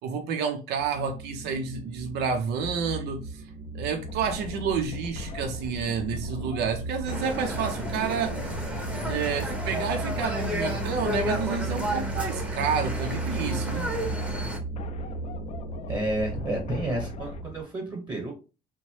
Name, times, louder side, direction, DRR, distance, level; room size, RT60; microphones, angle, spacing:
voice 1, 0.0-3.4 3.7-8.4 9.0-13.9, right 6 dB, 80° right, 0.5 m, -30 dB
sound 1, 0.8-17.6, right 3 dB, 40° right, 0.7 m, -36 dB
sound 2, 4.0-17.4, left 5 dB, 40° left, 0.4 m, -41 dB
sound 3, 7.1-14.6, equal, 5° right, 0.8 m, -32 dB
voice 2, 15.9-18.3, right 1 dB, 25° right, 1.0 m, -30 dB
2.9 x 2.1 x 3.0 m
cardioid pair, 110°, 17 cm